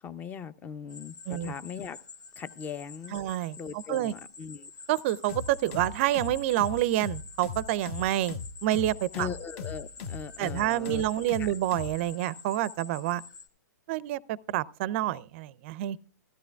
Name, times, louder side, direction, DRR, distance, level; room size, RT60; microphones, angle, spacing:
voice 1, 0.0-2.0 2.4-3.2 3.6-4.7 9.1-11.0 11.4-11.5, left 7 dB, 15° left, 0.5 m, -39 dB
sound 1, 0.9-13.5, left 5 dB, 70° left, 1.3 m, -48 dB
voice 2, 3.1-4.1 4.9-9.3 10.4-13.2 13.9-16.0, right 14 dB, 40° right, 0.4 m, -28 dB
sound 2, 5.3-12.0, left 5 dB, 45° left, 1.0 m, -38 dB
16.0 x 13.0 x 2.3 m
hypercardioid pair, 125°, 10 cm